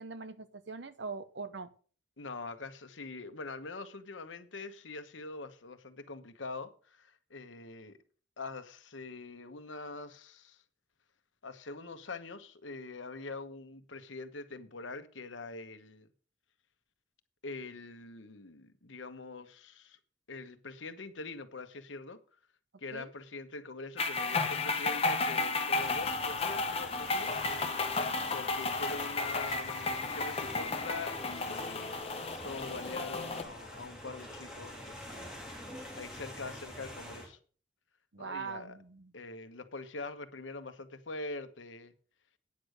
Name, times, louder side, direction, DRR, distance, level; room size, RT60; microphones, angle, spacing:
voice 1, 0.0-1.7 22.9-23.1 38.1-39.1, right 4 dB, 70° right, 0.9 m, -42 dB
voice 2, 2.2-8.0 8.4-10.6 11.4-16.1 17.4-20.0 20.3-22.2 22.8-27.3 28.3-35.4 35.9-37.4 38.2-38.8 39.1-41.9, left 3 dB, 85° left, 1.1 m, -44 dB
sound 1, 24.0-33.4, left 3 dB, 30° left, 1.0 m, -33 dB
sound 2, 25.7-37.3, equal, 5° right, 3.4 m, -47 dB
9.4 x 6.5 x 6.4 m
head